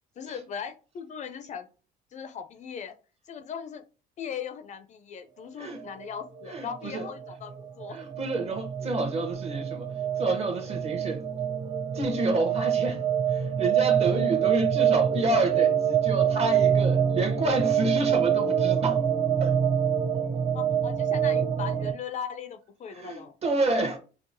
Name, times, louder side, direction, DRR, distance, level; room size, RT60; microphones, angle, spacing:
voice 1, 0.2-1.7 2.1-2.9 3.3-3.8 4.2-8.0 20.5-23.3, left 7 dB, 45° left, 0.4 m, -38 dB
sound 1, 5.8-21.9, right 8 dB, 25° right, 0.4 m, -26 dB
voice 2, 6.5-7.0 7.9-9.9 10.2-11.2 11.9-13.0 13.3-19.0 19.4-19.6 22.9-24.0, right 2 dB, 40° right, 0.8 m, -29 dB
4.6 x 2.0 x 2.5 m
cardioid pair, 110°, 17 cm